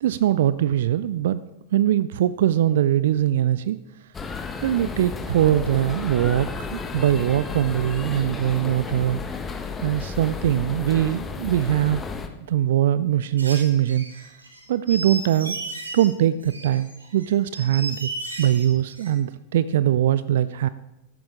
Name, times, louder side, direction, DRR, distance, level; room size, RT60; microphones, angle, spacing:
voice 1, 0.0-1.4 1.7-3.8 4.6-9.2 9.8-12.0 12.5-14.3 14.7-15.6 15.9-18.1 18.4-20.7, right 11 dB, 60° right, 16 dB, 0.4 m, -22 dB
sound 1, 4.1-12.3, left 4 dB, 15° left, 1.2 m, -33 dB
sound 2, 13.4-16.1 16.4-19.1, right 2 dB, 75° right, 2.8 m, -35 dB
15.0 x 13.0 x 3.7 m, 0.92 s
figure-of-eight pair, 90°, 0 cm